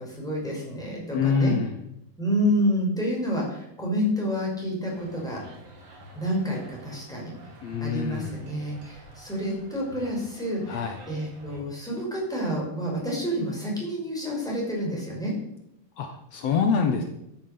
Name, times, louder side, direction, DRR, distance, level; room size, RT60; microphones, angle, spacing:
voice 1, 0.0-1.5 2.2-5.4 6.2-7.3 7.8-15.3, equal, ahead, -3 dB, 5.2 m, -29 dB
voice 2, 1.1-1.7 7.6-8.4 10.7-10.9 16.0-17.0, left 5 dB, 80° left, 5 dB, 1.4 m, -25 dB
sound 1, 4.9-11.6, right 1 dB, 60° right, 5.0 m, -48 dB
13.5 x 9.6 x 6.9 m, 0.80 s
omnidirectional pair, 4.6 m